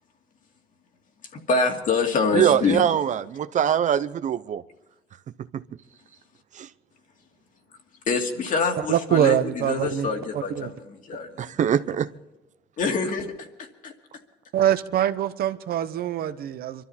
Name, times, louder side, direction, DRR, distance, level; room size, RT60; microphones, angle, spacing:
voice 1, 1.5-2.8 8.1-11.5 12.8-13.9, left 4 dB, 50° left, 2.3 m, -26 dB
voice 2, 2.3-4.6 5.5-5.6 6.5-6.7 11.4-12.1, right 9 dB, 45° right, 0.6 m, -23 dB
voice 3, 8.8-10.7 14.5-16.8, right 11 dB, 65° right, 0.9 m, -24 dB
24.0 x 13.0 x 4.2 m
cardioid pair, 110°, 17 cm